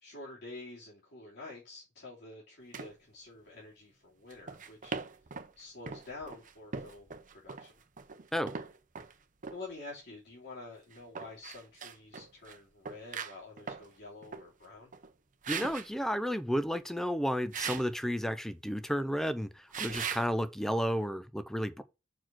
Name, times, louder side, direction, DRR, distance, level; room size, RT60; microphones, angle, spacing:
voice 1, 0.0-4.9 5.6-7.1 7.3-7.7 9.5-14.9, left 2 dB, 60° left, 3.0 m, -48 dB
sound 1, 2.7-2.9 4.3-5.5 5.9-9.1 9.4-9.6 10.9-12.6 12.9-13.9 14.2-14.5 14.9-15.1 15.4-15.9 17.5-17.9 19.7-20.3, right 6 dB, 45° right, 0.8 m, -40 dB
voice 2, 15.5-21.8, equal, ahead, 0.6 m, -32 dB
6.1 x 4.7 x 5.9 m
head